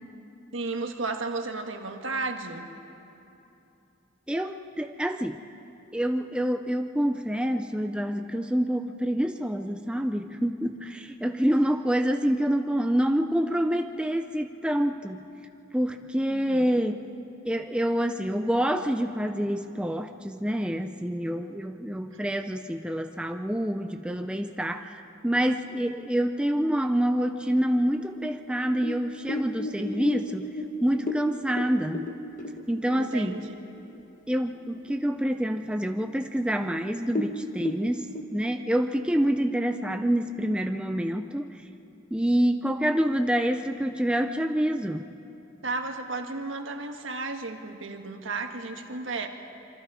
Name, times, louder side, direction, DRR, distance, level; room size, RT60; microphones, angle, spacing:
voice 1, 0.5-2.7 16.3-16.7 33.0-33.8 45.6-49.3, right 3 dB, 70° right, 5 dB, 1.5 m, -33 dB
voice 2, 4.3-5.4 5.9-15.3 15.7-17.1 17.4-32.1 32.7-33.5 34.3-41.7 42.1-45.0, equal, 5° right, 6 dB, 0.5 m, -27 dB
sound 1, 27.7-33.6 33.9-34.0 34.4-35.0 35.4-35.5 36.2-36.3 36.5-36.7 37.0-38.2, left 1 dB, 40° left, 1.3 m, -34 dB
26.5 x 24.0 x 4.9 m, 2.8 s
head